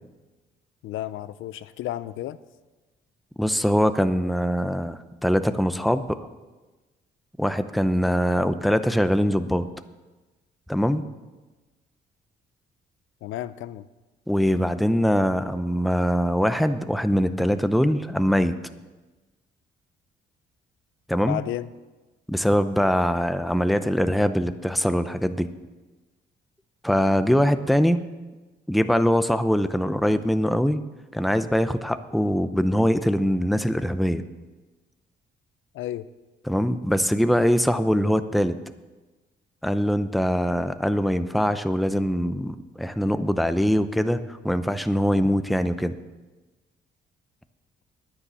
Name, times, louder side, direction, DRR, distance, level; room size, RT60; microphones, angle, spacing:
voice 1, 0.8-2.4 13.2-13.9 21.3-21.7 35.7-36.1, left 13 dB, 85° left, 15 dB, 0.6 m, -32 dB
voice 2, 3.4-6.3 7.4-9.7 10.7-11.0 14.3-18.5 21.1-21.4 22.3-25.5 26.8-28.0 28.7-30.8 31.1-34.2 36.5-38.6 39.6-45.9, equal, ahead, 11 dB, 0.7 m, -22 dB
9.9 x 9.7 x 7.0 m, 1.2 s
cardioid pair, 90°, 20 cm